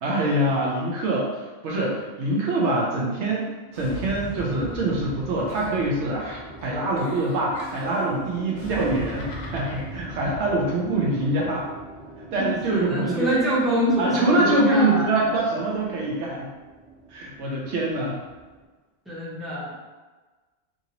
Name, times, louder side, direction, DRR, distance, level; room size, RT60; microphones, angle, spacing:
voice 1, 0.0-3.5 3.7-11.7 12.3-13.3 14.0-16.5 17.1-18.2, right 2 dB, 85° right, -3 dB, 0.9 m, -24 dB
sound 1, 3.6-18.6, right 2 dB, 45° right, 1.4 m, -40 dB
Giggle, 5.5-6.3 6.6-8.1 8.6-9.9, left 2 dB, 55° left, 0.5 m, -43 dB
voice 2, 12.6-15.1 17.4-17.5 19.1-19.8, equal, ahead, -9 dB, 0.8 m, -25 dB
2.9 x 2.5 x 2.8 m, 1.3 s
omnidirectional pair, 1.1 m